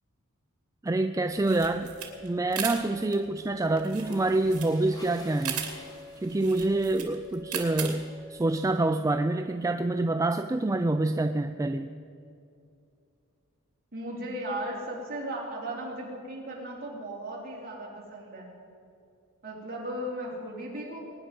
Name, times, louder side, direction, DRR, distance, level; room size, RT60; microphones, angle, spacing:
voice 1, 0.8-1.9 2.2-5.7 6.2-11.9, right 2 dB, 15° right, 8 dB, 0.4 m, -27 dB
sound 1, 1.3-8.6, right 9 dB, 80° right, 2.4 m, -38 dB
sound 2, 1.9-8.5, left 2 dB, 85° left, 2.8 m, -48 dB
sound 3, 3.8-7.4, left 1 dB, 20° left, 2.4 m, -49 dB
voice 2, 13.9-18.5 19.4-21.0, right 1 dB, 45° right, -4 dB, 4.3 m, -36 dB
23.0 x 10.0 x 5.4 m, 2.5 s
head